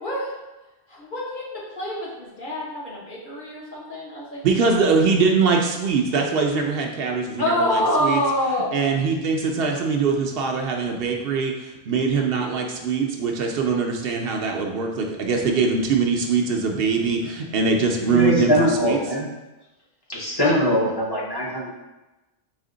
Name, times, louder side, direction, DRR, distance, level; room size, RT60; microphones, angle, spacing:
voice 1, 0.9-4.4 4.7-4.9 7.4-8.7, left 1 dB, 55° left, -6 dB, 1.3 m, -26 dB
voice 2, 4.4-8.2 8.7-18.5 18.8-19.0, right 4 dB, 70° right, 1 dB, 0.8 m, -22 dB
voice 3, 18.0-19.3 20.1-21.7, equal, 25° left, -5 dB, 0.7 m, -22 dB
4.2 x 2.8 x 3.8 m, 1.1 s
omnidirectional pair, 1.1 m